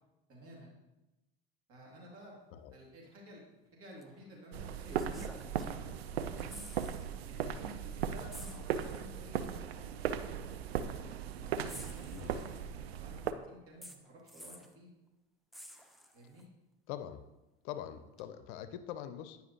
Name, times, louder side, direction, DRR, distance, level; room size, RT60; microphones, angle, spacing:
voice 1, 0.3-0.7 1.7-2.4 2.7-3.4 3.7-6.7 7.3-9.9 10.5-12.6 13.0-14.9 16.1-16.4, equal, 50° right, -2 dB, 2.4 m, -53 dB
sound 1, 4.0-4.1 4.9-6.0 6.3-7.1 7.4-7.6 8.3-9.2 10.2-10.3 11.7-12.7 13.8-14.8 15.5-16.4 18.2-18.3, equal, ahead, 0.6 m, -52 dB
sound 2, 4.5-13.3, right 8 dB, 80° right, 0.5 m, -38 dB
voice 2, 12.1-12.4 16.9-17.2 17.6-19.4, left 10 dB, 60° left, 11 dB, 0.6 m, -43 dB
9.2 x 5.6 x 2.9 m, 1.0 s
hypercardioid pair, 70°, 31 cm